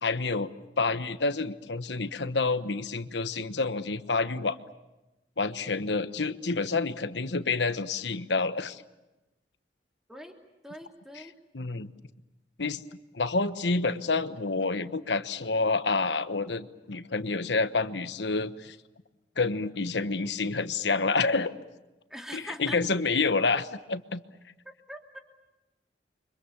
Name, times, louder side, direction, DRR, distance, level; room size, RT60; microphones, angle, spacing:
voice 1, 0.0-0.5 0.8-4.6 5.4-8.8 11.1-11.3 11.5-11.9 12.6-12.8 13.1-18.8 19.4-21.5 22.3-24.2, left 3 dB, 80° left, 11 dB, 1.2 m, -28 dB
voice 2, 10.6-11.3 22.1-22.8 24.6-25.2, equal, 5° right, 2 dB, 3.1 m, -42 dB
30.0 x 25.0 x 7.1 m, 1.0 s
head